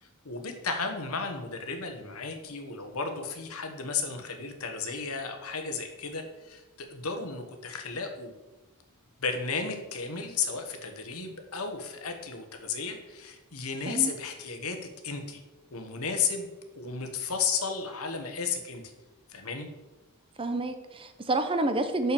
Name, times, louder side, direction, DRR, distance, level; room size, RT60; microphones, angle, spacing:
voice 1, 0.0-8.4 9.2-15.4 15.7-16.5 16.8-18.8 19.3-19.7, left 5 dB, 70° left, 5 dB, 1.3 m, -33 dB
voice 2, 20.4-22.1, right 2 dB, 25° right, 8 dB, 0.7 m, -28 dB
6.2 x 5.8 x 6.9 m, 1.1 s
head